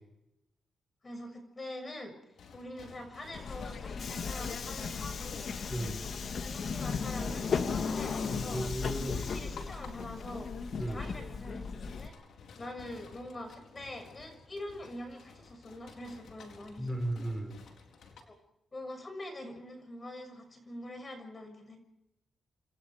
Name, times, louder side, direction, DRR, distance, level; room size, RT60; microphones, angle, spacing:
voice 1, 1.0-2.1 2.5-5.5 6.4-8.6 9.0-10.5 10.9-12.1 12.6-17.0 18.3-18.4 18.7-21.8, left 1 dB, 25° left, 6 dB, 6.7 m, -44 dB
sound 1, 2.3-18.2, left 5 dB, 80° left, 4.3 m, -54 dB
Subway metro underground, 3.3-12.1, left 5 dB, 55° left, 2.0 m, -36 dB
voice 2, 5.7-6.0 8.5-9.2 10.8-11.0 16.8-17.6, right 1 dB, 5° right, 3 dB, 5.5 m, -35 dB
28.0 x 27.0 x 5.1 m, 0.87 s
wide cardioid pair, 130°, 0 cm